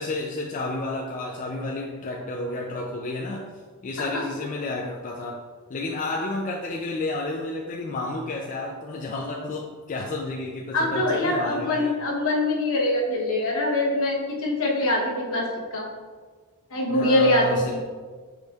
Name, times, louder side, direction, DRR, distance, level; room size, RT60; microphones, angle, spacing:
voice 1, 0.0-3.5 3.8-5.4 5.7-11.9 16.9-18.0, left 2 dB, 35° left, -2 dB, 0.3 m, -31 dB
voice 2, 10.7-15.9 16.7-17.8, left 1 dB, 65° left, -1 dB, 0.9 m, -24 dB
5.0 x 4.0 x 2.3 m, 1.5 s
head